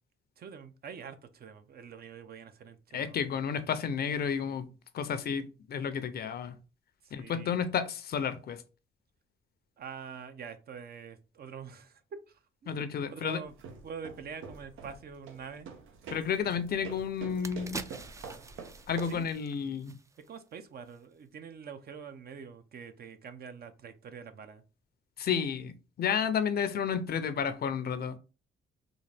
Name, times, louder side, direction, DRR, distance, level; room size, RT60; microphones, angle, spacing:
voice 1, 0.4-3.2 7.0-7.6 9.8-12.0 12.3-13.5 13.8-15.7 19.0-19.3 20.3-24.6, right 6 dB, 50° right, 0.6 m, -45 dB
voice 2, 2.9-4.7 4.9-6.6 7.1-8.6 12.7-13.4 16.1-17.8 18.9-19.9 25.2-28.2, left 7 dB, 50° left, 0.5 m, -31 dB
sound 1, 13.4-19.3, right 5 dB, 85° right, 0.8 m, -47 dB
sound 2, 16.7-16.8 17.2-20.5 20.8-21.0, right 3 dB, 15° right, 0.3 m, -45 dB
3.9 x 2.4 x 3.4 m
cardioid pair, 90°, 20 cm